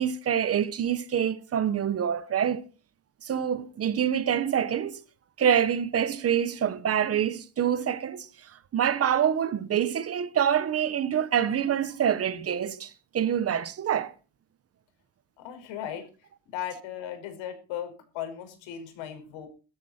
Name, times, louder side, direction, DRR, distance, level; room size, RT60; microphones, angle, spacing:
voice 1, 0.0-2.7 3.2-5.0 5.4-8.3 8.7-14.1, right 9 dB, 30° right, 1.0 m, -26 dB
voice 2, 15.4-16.1 16.5-19.5, left 10 dB, 90° left, 5.6 m, -37 dB
17.0 x 13.0 x 4.4 m
cardioid pair, 175°, 45 cm